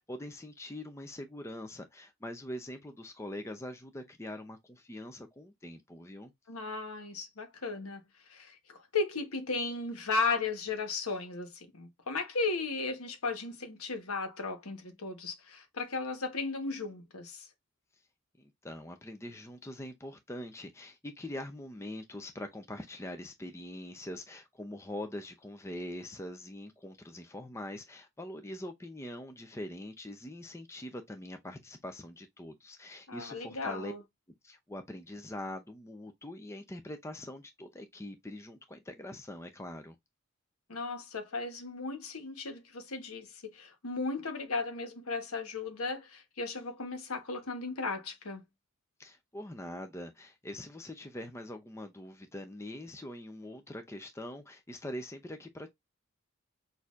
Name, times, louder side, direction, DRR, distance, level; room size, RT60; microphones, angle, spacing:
voice 1, 0.0-6.3 18.4-33.9 34.4-40.0 49.0-55.7, left 1 dB, 10° left, 0.4 m, -43 dB
voice 2, 6.5-8.0 8.3-17.5 33.1-34.0 40.7-48.4, left 3 dB, 75° left, 1.2 m, -35 dB
6.3 x 2.7 x 2.4 m
head